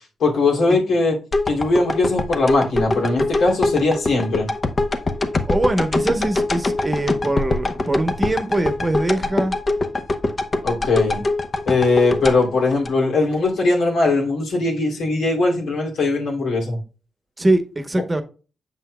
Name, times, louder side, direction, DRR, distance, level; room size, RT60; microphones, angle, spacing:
voice 1, 0.2-1.2 1.5-4.5 10.6-11.2 11.7-16.8, left 3 dB, 90° left, 2.5 m, -20 dB
sound 1, 1.3-13.5 13.9-14.0, left 2 dB, 40° left, 0.8 m, -23 dB
voice 2, 5.5-9.5 17.4-18.2, right 1 dB, 20° right, 1.0 m, -22 dB
7.4 x 5.7 x 2.2 m
cardioid pair, 80°, 0 cm